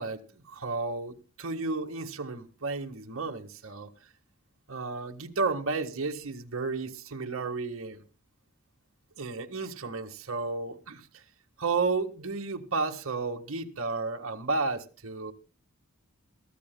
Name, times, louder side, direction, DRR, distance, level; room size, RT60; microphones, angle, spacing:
voice 1, 0.0-3.9 4.7-8.0 9.2-11.1 11.6-15.3, right 3 dB, 75° right, 1.5 m, -32 dB
23.5 x 14.0 x 2.2 m
head